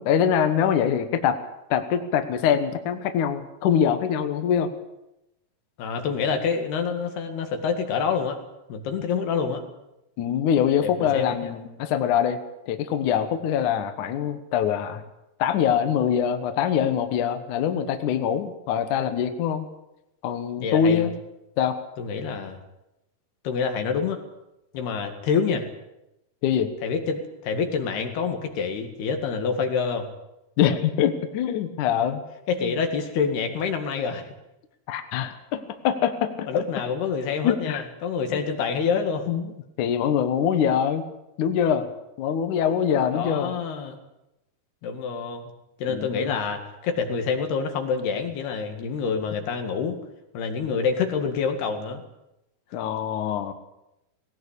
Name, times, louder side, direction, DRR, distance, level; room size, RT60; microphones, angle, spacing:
voice 1, 0.0-1.4 1.7-4.7 10.2-12.4 12.7-15.0 15.4-19.7 20.2-21.1 21.6-21.8 26.4-26.7 30.6-32.2 32.6-32.7 34.9-36.6 37.4-37.8 38.3-38.4 39.3-39.5 39.8-41.1 41.4-41.9 42.2-43.5 45.9-46.3 52.7-53.5, left 8 dB, 65° left, 8 dB, 2.4 m, -24 dB
voice 2, 5.8-8.4 8.7-9.6 10.8-11.5 20.6-21.0 22.0-22.6 23.4-24.2 24.7-25.7 26.8-30.1 32.5-34.3 36.5-39.3 43.1-44.0 44.8-45.5 45.8-50.0 50.3-52.0, left 5 dB, 85° left, 5 dB, 4.1 m, -27 dB
18.5 x 18.0 x 8.3 m, 0.90 s
omnidirectional pair, 4.5 m